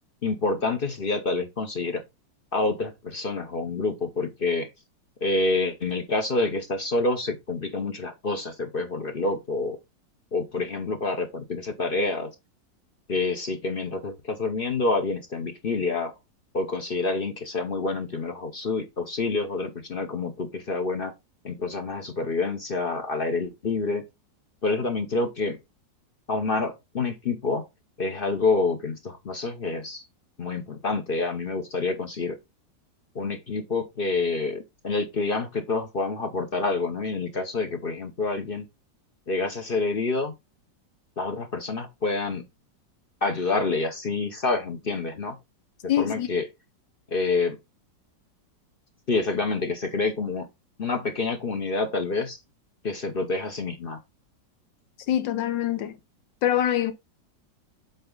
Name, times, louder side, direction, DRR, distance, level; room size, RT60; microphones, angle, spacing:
voice 1, 0.2-2.0 2.5-4.7 5.2-9.8 10.3-12.3 13.1-16.1 16.5-21.1 21.4-24.0 24.6-25.6 26.3-27.6 28.0-30.0 30.4-32.4 33.1-38.7 39.3-40.3 41.2-42.4 43.2-45.4 46.0-46.4 47.1-47.6 49.1-50.5 50.8-52.4 52.8-54.0, left 3 dB, 40° left, 0.8 m, -27 dB
voice 2, 45.9-46.3 55.1-55.9 56.4-56.9, left 11 dB, 85° left, 1.6 m, -24 dB
8.0 x 3.9 x 3.8 m
omnidirectional pair, 1.9 m